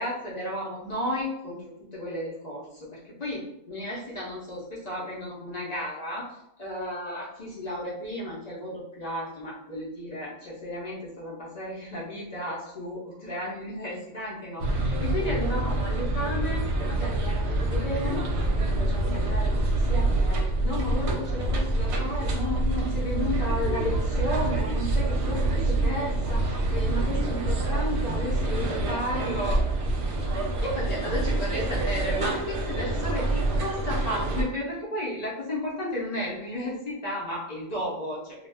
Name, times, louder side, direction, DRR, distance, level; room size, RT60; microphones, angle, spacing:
voice 1, 0.0-3.4 3.7-29.6 29.9-30.2 30.6-38.5, left 1 dB, 50° left, -6 dB, 0.5 m, -33 dB
sound 1, 14.6-34.4, right 2 dB, 65° right, 0.8 m, -26 dB
2.3 x 2.1 x 3.3 m, 0.80 s
omnidirectional pair, 1.3 m